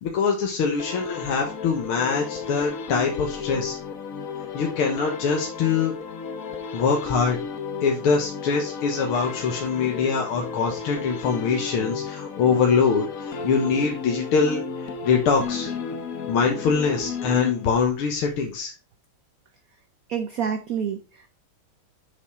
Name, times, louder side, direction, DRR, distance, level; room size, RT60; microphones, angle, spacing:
voice 1, 0.0-3.8 4.5-5.9 6.7-7.4 7.8-15.7 16.3-18.7, left 5 dB, 80° left, 1 dB, 2.1 m, -23 dB
sound 1, 0.8-18.0, left 5 dB, 50° left, 1.2 m, -34 dB
voice 2, 20.1-21.4, right 7 dB, 60° right, 7 dB, 0.9 m, -28 dB
8.0 x 6.4 x 3.7 m, 0.31 s
omnidirectional pair, 2.3 m